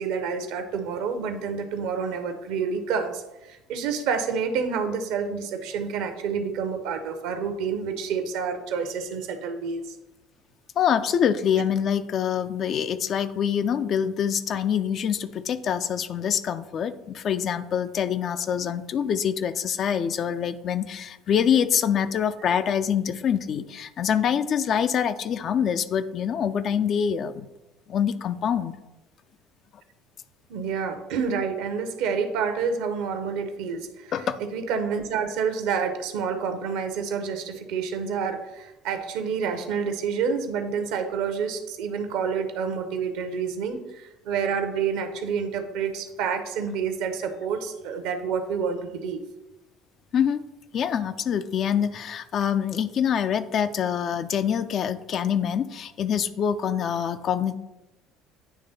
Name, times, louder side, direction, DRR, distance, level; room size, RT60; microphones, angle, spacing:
voice 1, 0.0-3.2 3.5-9.8 30.5-34.1 34.4-49.2, right 6 dB, 60° right, 8 dB, 0.7 m, -28 dB
voice 2, 10.8-27.5 27.9-28.7 34.1-34.4 50.1-50.4 50.7-57.5, left 8 dB, 45° left, 11 dB, 0.4 m, -25 dB
9.3 x 3.3 x 4.0 m, 0.99 s
figure-of-eight pair, 60°, 0 cm